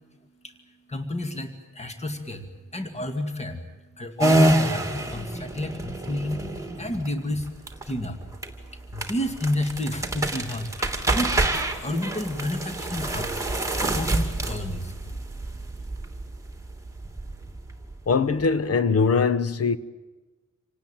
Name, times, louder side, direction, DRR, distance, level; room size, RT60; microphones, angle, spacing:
voice 1, 0.4-3.7 4.0-6.5 6.7-8.2 8.5-11.5 11.8-13.4 13.7-14.9, left 1 dB, 20° left, 2.2 m, -31 dB
sound 1, 4.2-18.4, right 2 dB, 10° right, 2.8 m, -27 dB
voice 2, 18.1-19.8, left 5 dB, 50° left, 1.2 m, -21 dB
27.5 x 18.5 x 8.9 m
wide cardioid pair, 135°, 31 cm